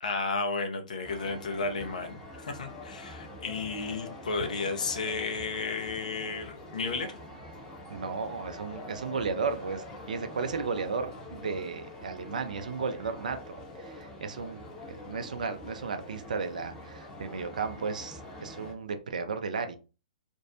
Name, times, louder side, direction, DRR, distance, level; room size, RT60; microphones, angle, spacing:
voice 1, 0.0-7.2, left 4 dB, 70° left, 0.6 m, -33 dB
county fair crowd walla, 1.0-18.7, left 1 dB, 20° left, 0.7 m, -45 dB
voice 2, 7.9-19.8, right 5 dB, 75° right, 0.4 m, -34 dB
2.5 x 2.0 x 2.6 m
hypercardioid pair, 120°, 4 cm